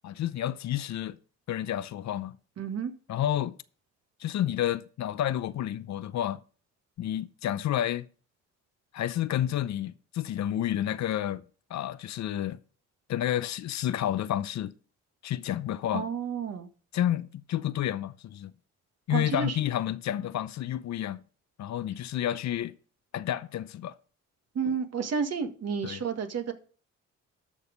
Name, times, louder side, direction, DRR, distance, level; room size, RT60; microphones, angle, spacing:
voice 1, 0.0-1.2 1.5-2.4 3.1-3.6 4.2-6.4 7.0-8.1 8.9-11.4 11.7-12.6 13.1-14.7 15.2-16.1 16.9-18.5 19.1-21.2 21.6-22.7 23.1-23.9 25.8-26.0, left 11 dB, 65° left, 0.7 m, -30 dB
voice 2, 2.6-2.9 15.9-16.7 19.1-19.6 24.6-26.5, right 6 dB, 55° right, 1.8 m, -31 dB
12.5 x 6.4 x 5.1 m
cardioid pair, 90°, 30 cm